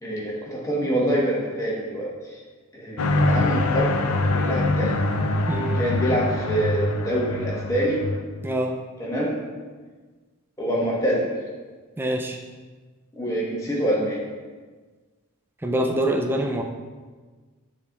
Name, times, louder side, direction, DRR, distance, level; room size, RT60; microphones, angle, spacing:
voice 1, 0.0-2.4 2.7-3.9 4.3-4.9 5.7-8.1 9.0-9.4 10.6-11.3 13.1-14.2, right 1 dB, 15° left, -4 dB, 1.1 m, -25 dB
sound 1, 3.0-8.2, left 2 dB, 80° left, 0.5 m, -24 dB
voice 2, 5.5-5.8 8.4-8.8 12.0-12.4 15.6-16.6, right 1 dB, 10° right, 3 dB, 0.4 m, -25 dB
10.0 x 4.1 x 2.4 m, 1.4 s
head